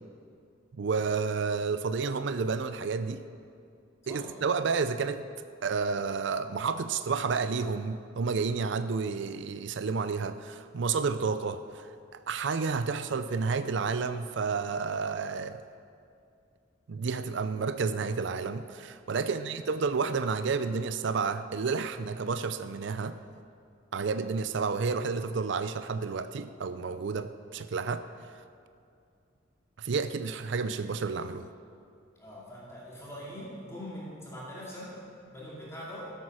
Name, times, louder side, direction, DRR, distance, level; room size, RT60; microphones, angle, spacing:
voice 1, 0.8-3.2 4.1-5.2 5.6-11.9 12.1-15.6 16.9-23.2 23.9-28.0 29.8-31.5, right 5 dB, 60° right, 11 dB, 0.4 m, -30 dB
voice 2, 32.2-35.0 35.3-36.1, equal, 15° left, -6 dB, 2.4 m, -43 dB
15.0 x 8.3 x 6.2 m, 2.4 s
head